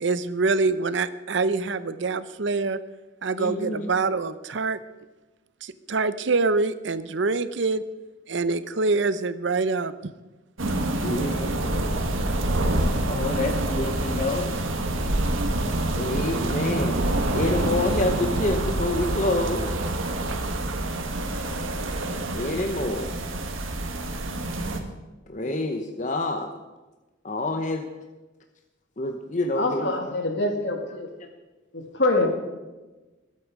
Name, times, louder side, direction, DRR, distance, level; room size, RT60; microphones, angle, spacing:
voice 1, 0.0-2.8 3.2-4.8 5.6-7.8 8.3-9.9, right 3 dB, 65° right, 14 dB, 0.6 m, -25 dB
voice 2, 3.4-3.9 11.0-11.9 13.1-14.6 16.0-17.0 17.3-19.7 22.3-23.1 25.3-26.5 27.2-27.8 29.0-29.9, left 2 dB, 40° left, 5 dB, 0.9 m, -27 dB
sound 1, 10.6-24.8, right 1 dB, 85° right, 1.6 m, -26 dB
voice 3, 29.6-31.1 31.7-32.3, left 2 dB, 60° left, 3 dB, 2.2 m, -25 dB
21.0 x 8.4 x 4.8 m, 1.2 s
head